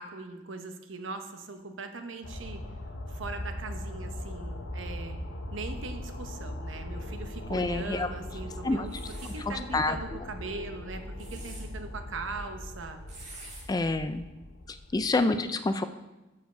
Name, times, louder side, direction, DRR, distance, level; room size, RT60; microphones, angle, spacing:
voice 1, 0.0-2.6 3.1-5.2 5.5-13.0 14.9-15.0, right 3 dB, 80° right, 7 dB, 0.9 m, -40 dB
sound 1, 2.2-15.2, left 1 dB, 70° left, 0.9 m, -40 dB
voice 2, 7.5-8.1 8.6-9.0 9.5-10.3 13.7-14.3 14.7-15.8, left 2 dB, 20° left, 10 dB, 0.3 m, -28 dB
sound 2, 8.9-9.4 11.0-11.6 13.1-13.6, right 3 dB, 35° right, 2.1 m, -46 dB
6.8 x 5.3 x 6.6 m, 1.1 s
head